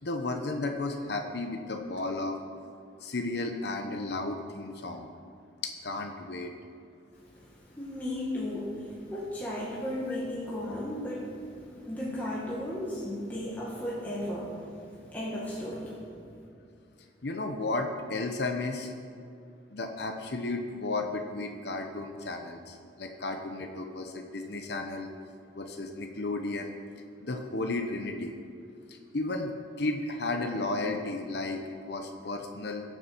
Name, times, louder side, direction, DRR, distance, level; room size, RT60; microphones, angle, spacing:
voice 1, 0.0-2.4 3.0-5.1 5.6-6.5 17.2-18.9 19.7-25.1 25.5-26.7 27.2-28.3 28.9-29.5 29.8-31.6 31.8-32.8, left 2 dB, 60° left, 4 dB, 0.9 m, -33 dB
voice 2, 7.3-16.0, left 1 dB, 10° left, -6 dB, 1.8 m, -35 dB
21.0 x 7.2 x 4.6 m, 2.5 s
head